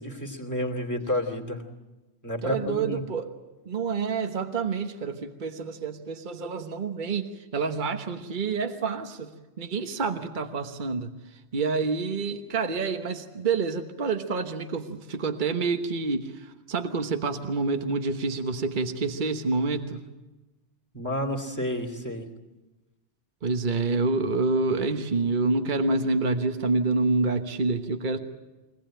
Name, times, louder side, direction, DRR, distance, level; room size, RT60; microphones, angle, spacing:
voice 1, 0.0-1.6 2.2-3.1 20.9-22.3, left 1 dB, 15° left, 4 dB, 2.7 m, -30 dB
voice 2, 2.4-3.3 3.6-11.1 11.5-20.0 23.4-28.2, right 4 dB, 45° right, 6 dB, 1.3 m, -28 dB
24.5 x 18.0 x 8.9 m, 1.1 s
omnidirectional pair, 1.2 m